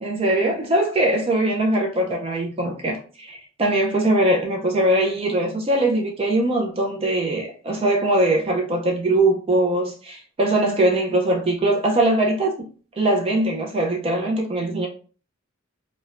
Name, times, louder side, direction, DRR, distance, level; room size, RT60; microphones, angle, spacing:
voice 1, 0.0-12.7 13.0-14.9, right 1 dB, 30° right, 0.4 m, -21 dB
3.1 x 2.1 x 2.4 m
head